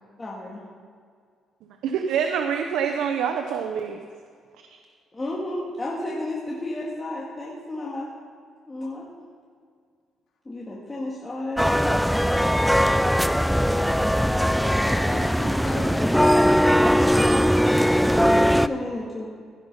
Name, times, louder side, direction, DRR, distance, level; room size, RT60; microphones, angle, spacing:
voice 1, 0.2-0.6 5.1-8.1 8.7-9.2 10.5-12.2 13.4-15.0 18.2-19.3, left 1 dB, 20° left, -5 dB, 2.1 m, -33 dB
voice 2, 1.8-4.0, right 7 dB, 85° right, 5 dB, 0.7 m, -25 dB
sound 1, 11.6-18.7, equal, ahead, 0.3 m, -20 dB
voice 3, 14.8-17.6, left 3 dB, 70° left, -1 dB, 2.2 m, -38 dB
16.5 x 5.9 x 5.5 m, 2.1 s
cardioid pair, 90°, 0 cm